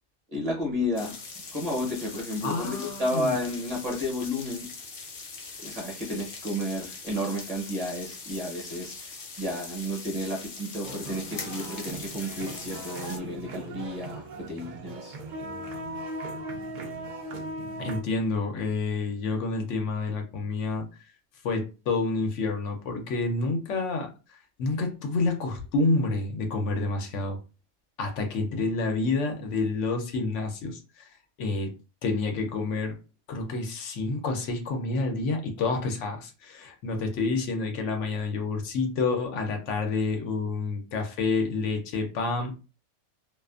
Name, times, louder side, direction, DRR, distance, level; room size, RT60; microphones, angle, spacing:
voice 1, 0.3-1.2 1.5-4.7 5.6-15.2, left 1 dB, 35° right, -2 dB, 0.8 m, -32 dB
sound 1, 1.0-13.2, left 4 dB, 55° left, 0.7 m, -41 dB
voice 2, 2.4-3.3 17.8-20.9 21.4-24.1 24.6-27.4 28.0-31.1 31.4-31.7 32.0-33.0 33.3-42.6, left 3 dB, 80° left, 4 dB, 1.0 m, -28 dB
sound 2, 10.8-18.0, right 2 dB, 60° right, 0.5 m, -38 dB
2.4 x 2.4 x 2.3 m, 0.32 s
omnidirectional pair, 1.2 m